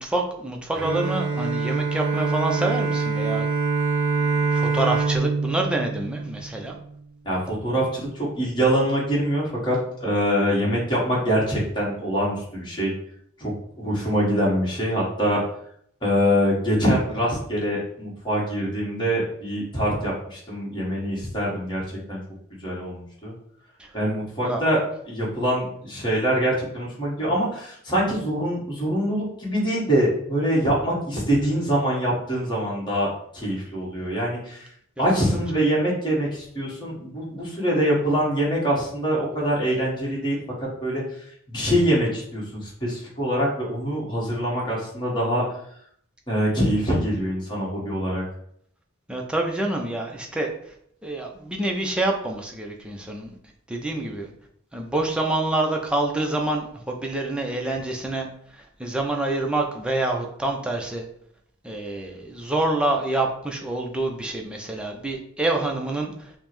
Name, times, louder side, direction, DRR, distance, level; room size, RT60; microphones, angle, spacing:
voice 1, 0.0-3.5 4.2-6.7 24.4-24.6 35.0-35.1 49.1-50.5 51.0-53.3 53.7-54.3 54.7-58.3 58.8-61.0 61.6-66.1, right 2 dB, 5° right, 1 dB, 0.5 m, -27 dB
Bowed string instrument, 0.8-6.9, right 4 dB, 60° right, 0.6 m, -25 dB
voice 2, 7.2-12.9 13.4-15.4 16.0-21.8 22.1-22.2 22.6-23.3 23.9-24.8 25.1-34.7 35.0-41.0 41.5-45.4 46.3-48.2, equal, 25° left, -5 dB, 1.2 m, -24 dB
5.3 x 2.1 x 3.0 m, 0.66 s
head